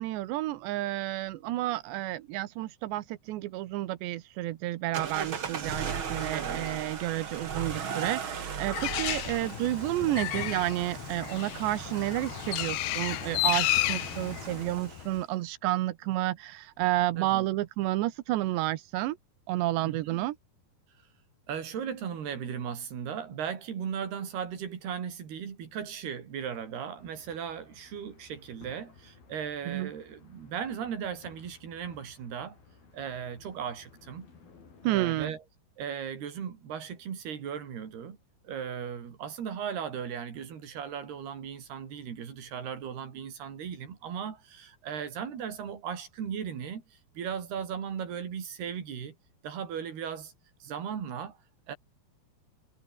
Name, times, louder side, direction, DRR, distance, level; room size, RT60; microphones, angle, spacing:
voice 1, 0.0-19.2 19.5-20.4 29.7-29.9 34.8-35.3, right 16 dB, 90° right, 3.4 m, -31 dB
sound 1, 4.9-15.2, right 7 dB, 40° right, 2.0 m, -37 dB
voice 2, 6.3-6.7 17.2-17.5 19.8-20.2 21.5-32.6 32.9-34.3 34.8-35.4 35.8-38.2 38.4-49.2 49.4-50.3 50.6-51.4 51.7-51.8, right 8 dB, 70° right, 5.5 m, -37 dB
Bird, 8.7-15.2, left 17 dB, 75° left, 2.7 m, -32 dB
sound 2, 27.0-35.3, left 5 dB, 60° left, 7.7 m, -57 dB
omnidirectional pair, 4.9 m